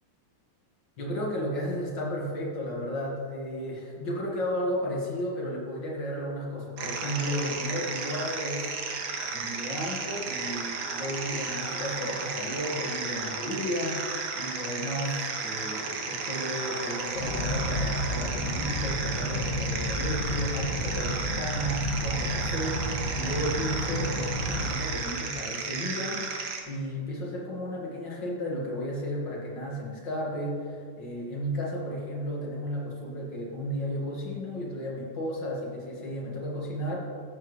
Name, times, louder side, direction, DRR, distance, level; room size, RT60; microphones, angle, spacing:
voice 1, 1.0-9.0 9.3-37.0, equal, 70° left, -4 dB, 2.5 m, -33 dB
sound 1, 6.8-26.6, right 4 dB, 65° right, 1.5 m, -33 dB
sound 2, 17.1-24.7, equal, 45° left, 2.0 m, -31 dB
14.5 x 7.2 x 3.2 m, 2.2 s
omnidirectional pair, 2.0 m